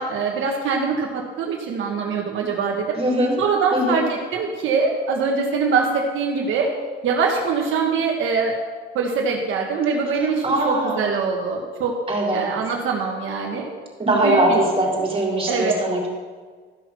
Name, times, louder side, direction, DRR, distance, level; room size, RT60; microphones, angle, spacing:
voice 1, 0.0-3.0 3.4-6.7 7.0-8.6 8.9-11.9 12.3-13.7 14.0-14.6 15.5-15.7, right 5 dB, 80° right, 0 dB, 1.4 m, -23 dB
voice 2, 2.9-3.3 3.7-4.0 10.4-11.0 12.1-12.5 14.0-16.1, right 1 dB, 30° right, -2 dB, 3.8 m, -21 dB
13.5 x 6.0 x 5.9 m, 1.5 s
cardioid pair, 90°, 20 cm